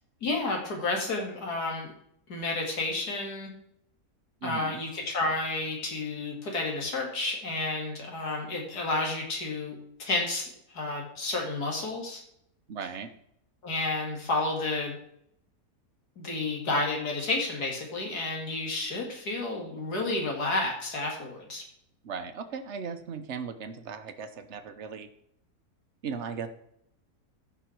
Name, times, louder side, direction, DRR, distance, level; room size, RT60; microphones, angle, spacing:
voice 1, 0.2-1.9 2.3-3.5 4.4-12.2 13.6-15.0 16.2-21.6, left 2 dB, 75° left, 1 dB, 2.9 m, -31 dB
voice 2, 4.4-4.8 12.7-13.1 22.0-25.1 26.0-26.5, right 6 dB, 50° right, 10 dB, 1.1 m, -37 dB
14.5 x 6.0 x 4.6 m, 0.73 s
omnidirectional pair, 1.7 m